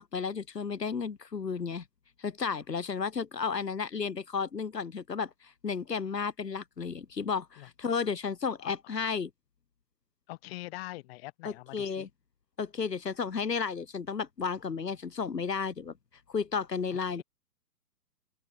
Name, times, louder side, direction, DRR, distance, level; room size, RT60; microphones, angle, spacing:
voice 1, 0.0-1.8 2.2-9.3 11.4-12.1 12.6-15.9 16.3-17.2, left 5 dB, 85° left, 2.8 m, -33 dB
voice 2, 10.3-12.1 17.1-17.2, left 19 dB, 40° left, 5.6 m, -43 dB
open air
hypercardioid pair, 130°, 48 cm